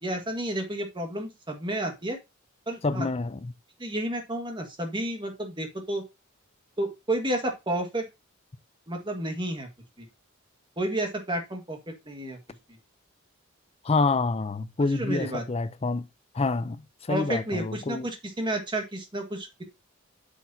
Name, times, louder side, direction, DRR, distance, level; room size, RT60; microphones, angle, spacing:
voice 1, 0.0-2.2 2.7-3.1 3.8-6.0 6.8-8.1 8.9-9.7 10.0-10.1 10.8-12.4 14.9-15.4 17.1-19.6, right 1 dB, 25° right, 1.7 m, -31 dB
voice 2, 2.8-3.5 13.8-16.1 16.3-18.1, left 3 dB, 30° left, 0.5 m, -27 dB
8.3 x 6.3 x 2.7 m
head